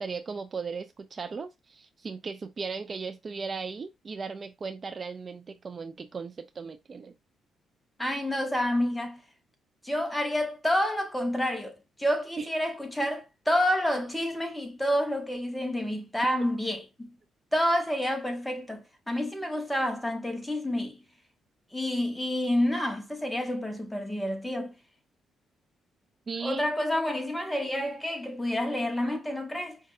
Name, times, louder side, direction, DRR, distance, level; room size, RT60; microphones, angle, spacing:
voice 1, 0.0-7.1 12.4-12.5 26.3-26.6, right 5 dB, 40° right, 0.4 m, -37 dB
voice 2, 8.0-9.2 9.8-17.1 17.5-21.0 21.7-24.7 26.4-29.8, left 1 dB, 5° left, 1.0 m, -29 dB
5.2 x 2.5 x 2.5 m
cardioid pair, 90°, 0 cm